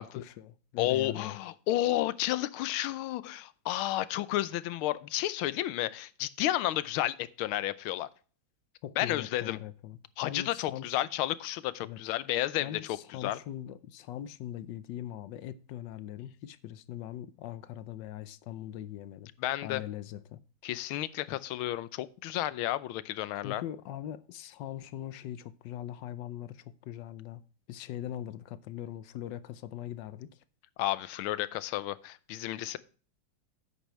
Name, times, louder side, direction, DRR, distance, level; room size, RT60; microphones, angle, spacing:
voice 1, 0.0-1.4 8.8-11.0 11.8-12.0 12.6-19.3 19.6-20.4 21.3-21.4 23.4-27.4 27.7-30.4, left 11 dB, 70° left, 1.2 m, -41 dB
voice 2, 0.8-8.1 9.0-9.6 10.2-13.4 19.4-19.8 20.6-23.6 30.8-32.8, left 14 dB, 90° left, 1.5 m, -32 dB
9.7 x 8.3 x 3.1 m
omnidirectional pair, 2.2 m